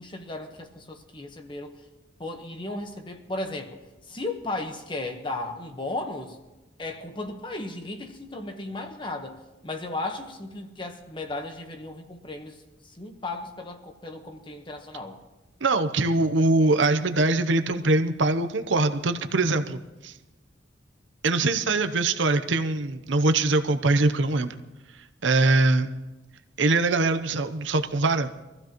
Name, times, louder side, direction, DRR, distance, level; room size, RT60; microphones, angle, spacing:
voice 1, 0.0-1.8 2.2-3.8 4.1-6.4 6.8-15.2, left 2 dB, 25° left, 5 dB, 1.2 m, -35 dB
voice 2, 15.6-20.1 21.2-24.5 25.2-25.9 26.6-28.3, right 2 dB, 80° right, 9 dB, 0.8 m, -23 dB
24.0 x 15.0 x 3.0 m, 1.1 s
head